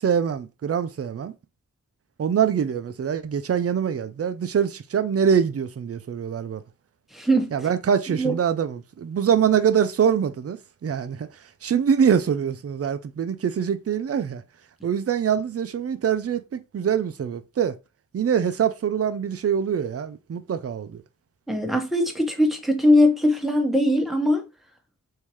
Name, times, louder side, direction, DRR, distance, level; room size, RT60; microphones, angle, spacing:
voice 1, 0.0-1.3 2.2-6.6 7.5-11.3 11.6-14.4 14.8-17.8 18.1-21.0, right 7 dB, 45° right, 0.5 m, -24 dB
voice 2, 7.1-7.5 8.2-8.3 21.5-24.4, left 1 dB, ahead, 1.1 m, -20 dB
3.5 x 2.7 x 3.0 m
cardioid pair, 60°, 34 cm